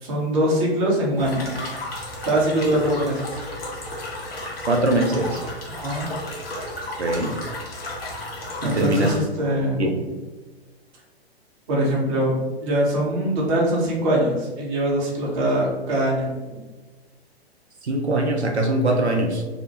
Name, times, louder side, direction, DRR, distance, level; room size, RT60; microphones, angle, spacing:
voice 1, 0.0-1.5 2.3-3.4 5.8-6.1 8.6-9.9 11.7-16.6, right 1 dB, 30° right, -4 dB, 0.8 m, -23 dB
sound 1, 1.2-9.2, left 1 dB, 65° left, 0.9 m, -33 dB
voice 2, 4.7-5.4 7.0-7.3 8.7-9.1 9.8-9.9 17.8-19.4, right 1 dB, 85° right, 1 dB, 0.5 m, -21 dB
2.8 x 2.0 x 2.8 m, 1.3 s
figure-of-eight pair, 115°, 32 cm